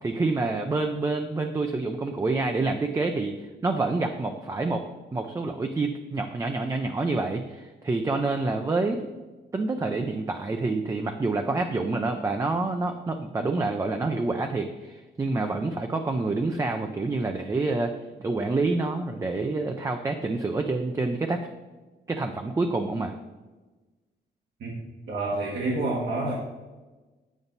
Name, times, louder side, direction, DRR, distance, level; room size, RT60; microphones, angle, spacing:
voice 1, 0.0-3.3 3.6-4.8 5.1-9.1 9.5-17.9 18.2-21.5 22.1-23.2, right 3 dB, 20° right, 5 dB, 0.4 m, -27 dB
voice 2, 25.1-26.3, right 2 dB, 80° right, -2 dB, 1.6 m, -28 dB
8.9 x 7.1 x 4.0 m, 1.2 s
wide cardioid pair, 170°, 18 cm